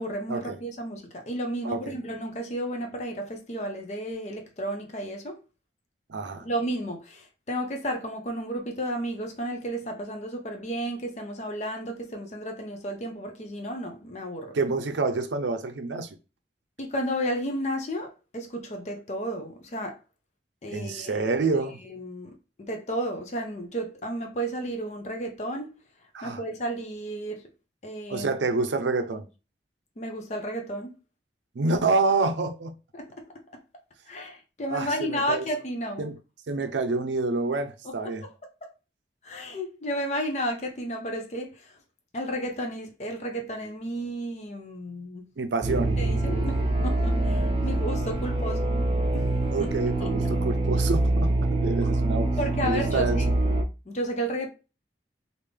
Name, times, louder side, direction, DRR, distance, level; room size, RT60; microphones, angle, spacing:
voice 1, 0.0-5.4 6.4-14.5 16.8-20.0 20.6-21.3 21.9-25.7 26.2-27.4 27.8-28.3 30.0-30.9 32.9-33.2 34.1-36.1 38.0-38.3 38.6-38.7 39.2-41.8 42.1-45.3 46.0-48.9 49.1-49.3 49.6-49.7 50.0-50.1 52.4-53.3 53.9-54.5, equal, 40° left, 0.6 m, -32 dB
voice 2, 1.6-1.9 6.1-6.5 14.5-16.2 20.7-21.8 26.1-26.4 28.1-29.3 31.5-32.7 34.7-35.4 36.0-36.1 36.5-38.2 45.4-45.9 49.5-52.3 52.6-53.2, right 3 dB, 85° right, 0.5 m, -27 dB
sound 1, 45.6-53.6, right 2 dB, 30° right, 0.5 m, -25 dB
3.5 x 2.5 x 3.2 m
head